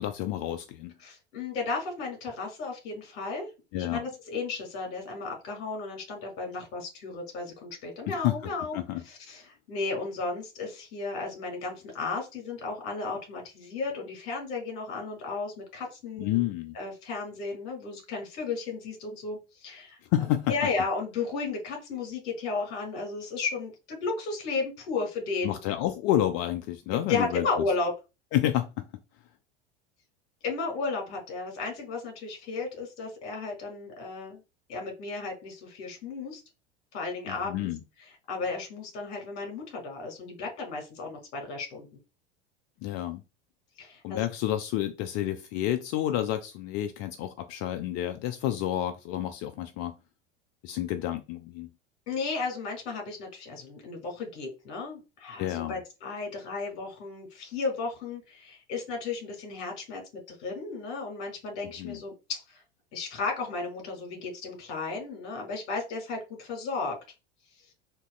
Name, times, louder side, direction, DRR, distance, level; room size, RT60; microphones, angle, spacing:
voice 1, 0.0-0.9 3.7-4.0 8.1-8.3 8.7-9.0 16.2-16.8 20.1-20.5 25.4-27.5 28.3-28.7 37.3-37.8 42.8-43.2 44.0-49.9 50.6-51.7 55.4-55.8 61.8-62.0, left 13 dB, 45° left, 0.4 m, -29 dB
voice 2, 1.0-3.5 3.9-8.8 9.1-16.4 16.7-20.0 20.5-25.6 26.9-27.9 30.4-34.4 34.7-36.4 36.9-37.7 38.3-41.9 43.8-44.2 52.1-60.0 60.3-62.6 62.9-67.0, left 4 dB, 65° left, 1.8 m, -34 dB
3.9 x 2.5 x 2.2 m
hypercardioid pair, 80°, 34 cm